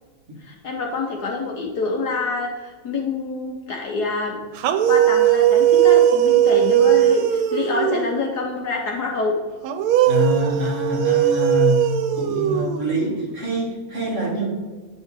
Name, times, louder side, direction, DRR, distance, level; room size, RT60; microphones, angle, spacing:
voice 1, 0.4-4.4 4.9-9.3, left 3 dB, 60° left, 0 dB, 1.2 m, -26 dB
sound 1, 4.6-8.3 9.6-13.2, right 11 dB, 85° right, 1.5 m, -18 dB
voice 2, 10.0-14.5, equal, 40° right, -3 dB, 1.6 m, -25 dB
9.0 x 5.3 x 3.7 m, 1.4 s
omnidirectional pair, 2.3 m